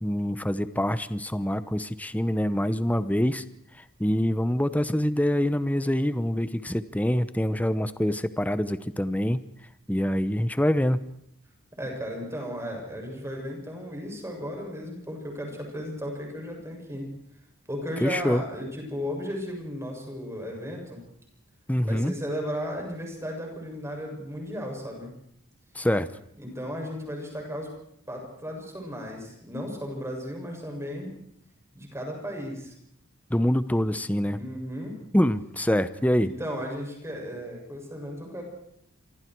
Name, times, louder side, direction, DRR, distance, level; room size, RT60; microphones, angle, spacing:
voice 1, 0.0-3.4 4.0-9.4 9.9-11.0 18.0-18.4 21.7-22.1 25.7-26.1 33.3-34.4 35.1-36.3, equal, 5° left, 13 dB, 0.9 m, -25 dB
voice 2, 11.8-17.1 17.7-21.0 21.8-25.1 26.4-27.7 28.1-31.1 31.7-32.7 34.3-34.9 36.2-38.4, equal, 15° right, 1 dB, 7.3 m, -35 dB
26.5 x 25.5 x 4.7 m, 0.73 s
head